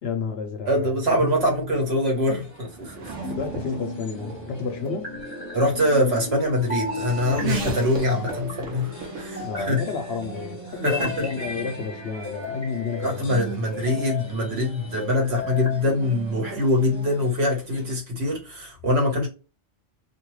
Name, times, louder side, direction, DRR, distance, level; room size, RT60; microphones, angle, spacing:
voice 1, 0.0-1.3 3.4-5.1 9.4-13.4, left 5 dB, 65° left, 0.7 m, -31 dB
voice 2, 0.7-3.1 5.5-9.8 10.8-11.2 13.0-19.3, left 1 dB, 60° right, 1.3 m, -24 dB
sound 1, 1.2-1.9 3.2-4.0 4.8-5.6 6.7-7.5 8.1-8.7 9.4-10.2 10.9-11.5 12.2-13.2 13.7-14.3 15.0-15.8, left 2 dB, 10° left, 1.2 m, -35 dB
Race car auto racing / Accelerating revving vroom, 1.4-17.3, right 4 dB, 80° right, 1.2 m, -39 dB
sound 2, 1.7-18.0, left 1 dB, 30° left, 0.7 m, -39 dB
2.7 x 2.3 x 3.0 m
omnidirectional pair, 1.3 m